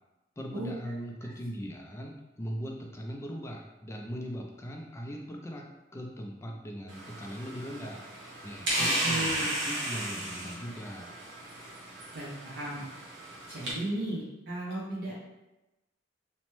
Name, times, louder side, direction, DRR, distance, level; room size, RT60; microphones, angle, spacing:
voice 1, 0.4-5.7 5.9-11.2, equal, 15° left, 1 dB, 0.3 m, -40 dB
sound 1, 6.9-13.7, right 1 dB, 80° right, 1.0 m, -34 dB
voice 2, 8.7-9.4 12.1-12.8 13.5-15.1, right 1 dB, 60° right, -7 dB, 0.6 m, -35 dB
2.9 x 2.1 x 3.0 m, 1.0 s
head